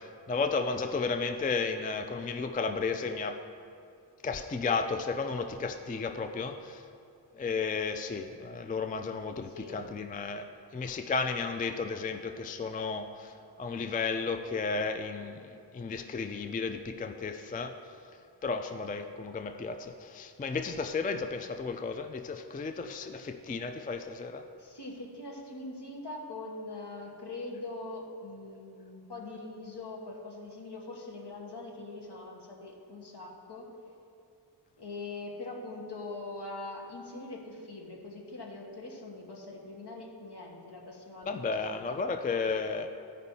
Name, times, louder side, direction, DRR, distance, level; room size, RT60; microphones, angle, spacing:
voice 1, 0.0-3.4 4.2-6.8 7.3-10.4 10.7-17.8 18.4-24.4 41.3-42.9, left 4 dB, 20° left, 7 dB, 0.3 m, -33 dB
voice 2, 9.5-9.8 24.6-33.7 34.8-42.2, left 2 dB, 65° left, -1 dB, 1.4 m, -42 dB
14.5 x 5.2 x 2.7 m, 2.4 s
wide cardioid pair, 70°, 44 cm